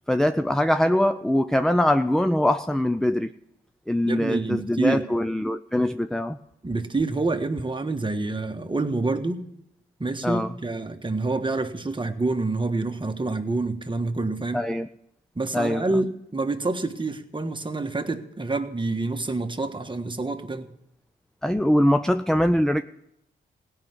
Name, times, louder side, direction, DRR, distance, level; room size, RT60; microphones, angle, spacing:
voice 1, 0.1-3.3 3.9-6.4 10.2-10.5 14.5-14.9 15.5-16.0 21.4-22.8, left 1 dB, ahead, 10 dB, 0.5 m, -22 dB
voice 2, 4.0-5.1 6.6-9.4 10.0-14.6 15.3-20.7, right 3 dB, 25° right, 6 dB, 1.4 m, -27 dB
16.5 x 5.7 x 9.6 m, 0.80 s
supercardioid pair, 50°, 21 cm